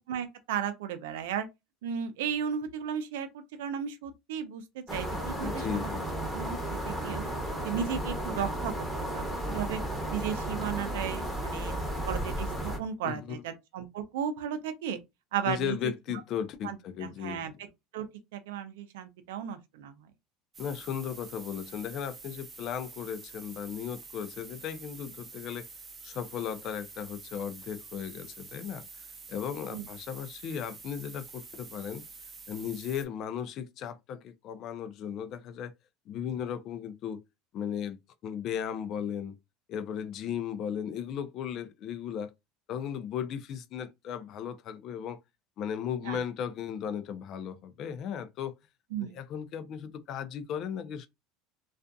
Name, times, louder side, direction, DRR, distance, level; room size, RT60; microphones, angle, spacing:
voice 1, 0.1-1.5 1.8-5.9 6.3-7.3 7.6-8.9 9.1-9.8 10.1-11.7 12.1-15.0 15.3-15.8 16.6-16.8 17.0-17.7 17.9-18.1 18.3-19.9 29.7-29.9 46.0-46.2 48.9-49.2, right 8 dB, 85° right, 0.5 m, -35 dB
sound 1, 4.9-12.8, right 1 dB, ahead, 0.9 m, -34 dB
voice 2, 5.4-6.1 13.0-13.4 15.4-17.4 20.6-25.7 26.0-28.9 29.3-32.0 32.5-35.7 36.1-37.2 37.5-38.0 38.2-39.4 39.7-42.3 42.7-45.2 45.6-48.5 49.0-51.1, left 8 dB, 45° left, 0.4 m, -36 dB
sound 2, 20.5-33.1, right 4 dB, 25° right, 0.6 m, -48 dB
2.5 x 2.4 x 2.2 m
supercardioid pair, 125°, 0 cm